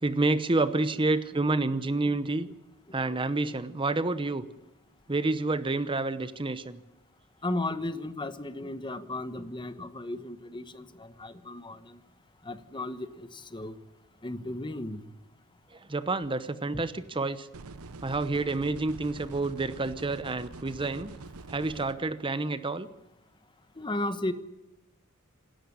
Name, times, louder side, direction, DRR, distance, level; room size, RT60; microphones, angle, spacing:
voice 1, 0.0-2.5 2.9-4.5 5.1-6.8 15.7-17.5 18.0-21.1 21.5-22.9, right 2 dB, 25° right, 13 dB, 0.8 m, -29 dB
voice 2, 7.4-12.0 12.4-13.8 14.2-15.0 23.8-24.3, left 2 dB, 20° left, 12 dB, 1.2 m, -35 dB
sound 1, 17.5-21.9, right 3 dB, 90° right, 0.9 m, -45 dB
27.0 x 13.0 x 9.7 m, 0.97 s
head